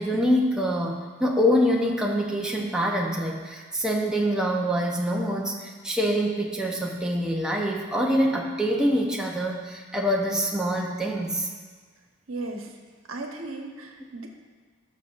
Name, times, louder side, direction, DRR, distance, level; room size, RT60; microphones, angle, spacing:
voice 1, 0.0-11.5, equal, 5° right, -2 dB, 0.8 m, -25 dB
voice 2, 12.3-12.8 13.1-14.3, right 2 dB, 70° right, 2 dB, 1.1 m, -36 dB
17.0 x 6.4 x 2.6 m, 1.5 s
head